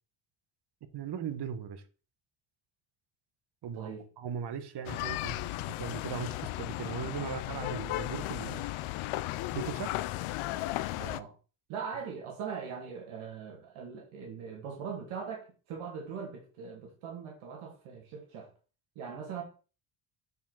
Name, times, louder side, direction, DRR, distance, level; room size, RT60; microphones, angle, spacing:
voice 1, 0.9-1.8 3.6-8.7 9.5-9.9, right 7 dB, 55° right, 1.2 m, -38 dB
voice 2, 3.7-4.1 11.0-11.3 11.7-18.5 19.0-19.4, right 6 dB, 75° right, 2.2 m, -41 dB
sound 1, 4.9-11.2, left 16 dB, 80° left, 0.6 m, -35 dB
8.2 x 4.9 x 3.9 m
cardioid pair, 110°, 49 cm